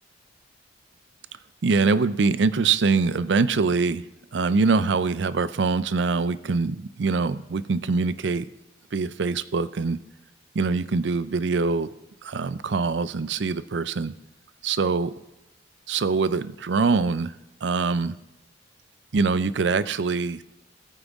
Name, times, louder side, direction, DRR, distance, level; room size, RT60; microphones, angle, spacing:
voice 1, 1.6-4.0 4.3-8.5 8.9-10.0 10.5-11.9 12.2-14.1 14.6-15.1 15.9-17.3 17.6-18.1 19.1-20.4, right 4 dB, 70° right, 16 dB, 0.5 m, -23 dB
17.0 x 9.1 x 3.6 m, 0.98 s
head